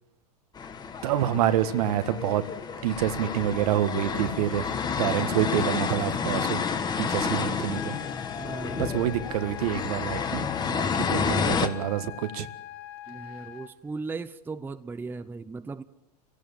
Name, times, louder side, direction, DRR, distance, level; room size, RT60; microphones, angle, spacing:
sound 1, 0.6-11.7, left 6 dB, 20° left, 1.6 m, -30 dB
voice 1, 1.0-2.4 2.8-4.7 5.0-6.6 7.0-8.0 8.8-12.5, right 11 dB, 65° right, 11 dB, 1.7 m, -27 dB
sound 2, 7.7-13.7, left 13 dB, 55° left, 2.9 m, -42 dB
voice 2, 8.4-9.0 13.1-15.8, right 4 dB, 10° right, 12 dB, 0.7 m, -37 dB
29.0 x 17.0 x 7.3 m, 0.95 s
hypercardioid pair, 125°, 21 cm